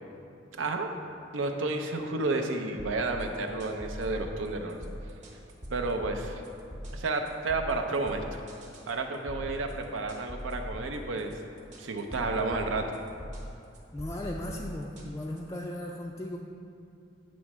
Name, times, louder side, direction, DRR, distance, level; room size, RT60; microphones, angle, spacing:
voice 1, 0.6-0.9 1.3-4.8 5.7-6.4 6.9-8.4 8.9-11.3 11.8-12.8, right 3 dB, 85° right, 4 dB, 0.6 m, -31 dB
sound 1, 2.8-15.6, equal, 40° right, 1.0 m, -42 dB
voice 2, 13.9-16.4, left 1 dB, 15° left, -2 dB, 0.3 m, -36 dB
8.5 x 3.1 x 6.0 m, 2.6 s
head